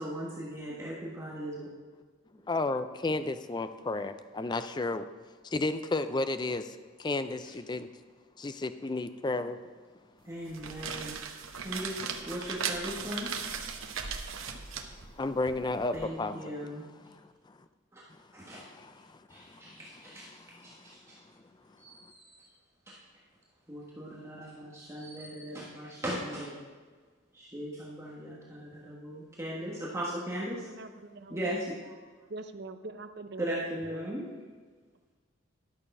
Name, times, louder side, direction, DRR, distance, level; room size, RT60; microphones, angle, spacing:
voice 1, 0.0-1.7 10.2-11.1 11.6-13.6 15.9-16.9 17.9-18.0 18.3-18.7 19.3-20.3 20.6-21.2 21.8-22.5 22.9-23.0 23.7-26.6 27.3-30.7 31.3-31.9 33.4-34.3, equal, 15° right, -6 dB, 1.3 m, -38 dB
voice 2, 2.5-5.1 5.4-7.9 8.4-9.6 14.5-14.6 14.9-16.7 17.0-17.6 18.4-21.0, left 2 dB, 20° left, 10 dB, 0.4 m, -34 dB
sound 1, 10.4-16.0, right 6 dB, 85° right, 0.9 m, -38 dB
voice 3, 30.6-31.4 32.3-34.1, right 3 dB, 55° right, 9 dB, 0.6 m, -43 dB
11.5 x 6.7 x 5.4 m, 1.5 s
head